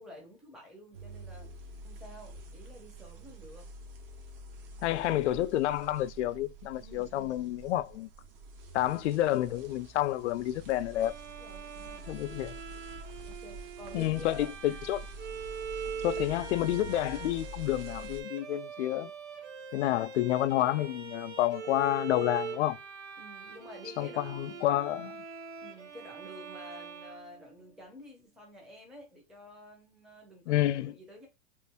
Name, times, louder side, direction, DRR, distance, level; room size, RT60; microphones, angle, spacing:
voice 1, 0.0-1.5 1.8-3.7 6.8-7.6 11.4-12.1 13.3-14.7 23.2-24.7 25.6-31.3, left 1 dB, ahead, 0.7 m, -50 dB
sound 1, 0.9-18.2, right 1 dB, 50° right, 1.0 m, -47 dB
voice 2, 4.8-8.1 8.7-11.1 12.1-12.6 13.9-15.1 16.0-19.1 19.7-22.8 24.0-25.2 30.5-30.9, left 14 dB, 75° left, 0.5 m, -29 dB
Bowed string instrument, 10.9-27.9, right 6 dB, 70° right, 1.4 m, -43 dB
3.1 x 2.6 x 3.4 m
supercardioid pair, 165°, 35 cm